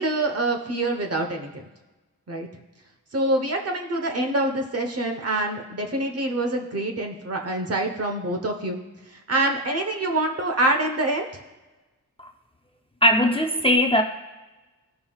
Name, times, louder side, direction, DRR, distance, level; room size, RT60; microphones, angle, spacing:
voice 1, 0.0-1.7 2.3-2.5 3.1-8.8 9.3-11.3, right 2 dB, 45° right, 4 dB, 1.0 m, -25 dB
voice 2, 13.0-14.0, equal, 15° left, 3 dB, 0.4 m, -19 dB
16.0 x 5.5 x 2.4 m, 1.1 s
wide cardioid pair, 105°, 35 cm